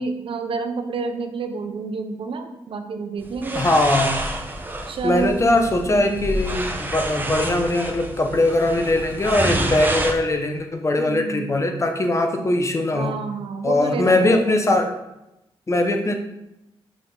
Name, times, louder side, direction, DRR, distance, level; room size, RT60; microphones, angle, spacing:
voice 1, 0.0-3.7 4.9-5.4 5.9-6.3 11.0-11.5 12.9-14.6, right 4 dB, 70° right, 7 dB, 0.8 m, -29 dB
sound 1, 3.2-10.1, right 1 dB, 20° right, 1.0 m, -28 dB
voice 2, 3.5-4.2 5.0-13.1 13.6-14.9 15.7-16.2, left 2 dB, 30° left, 5 dB, 0.9 m, -20 dB
6.1 x 5.8 x 3.9 m, 0.90 s
cardioid pair, 85°, 9 cm